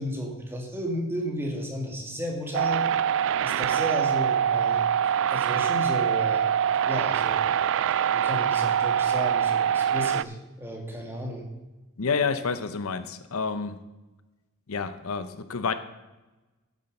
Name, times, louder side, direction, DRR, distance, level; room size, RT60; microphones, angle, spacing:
voice 1, 0.0-2.8 3.4-4.8 5.3-6.5 6.9-7.4 8.1-11.4, equal, 10° right, 1 dB, 2.0 m, -33 dB
sound 1, 2.5-10.2, right 9 dB, 60° right, 0.3 m, -24 dB
voice 2, 12.0-13.8 14.7-15.7, left 5 dB, 70° left, 12 dB, 0.7 m, -29 dB
10.0 x 7.4 x 6.6 m, 1.1 s
head